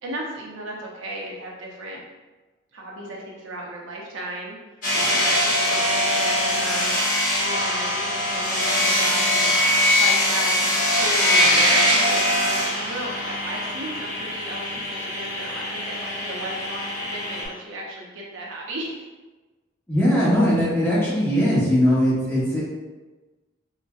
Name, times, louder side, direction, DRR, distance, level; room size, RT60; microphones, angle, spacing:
voice 1, 0.0-2.0 2.7-4.6 5.1-7.0 7.4-9.6 10.0-19.0, right 1 dB, 80° right, -2 dB, 0.6 m, -35 dB
sound 1, 4.8-17.4, left 1 dB, 40° left, 1.1 m, -22 dB
voice 2, 19.9-22.6, equal, 10° left, -9 dB, 0.9 m, -20 dB
3.9 x 2.1 x 2.3 m, 1.2 s
head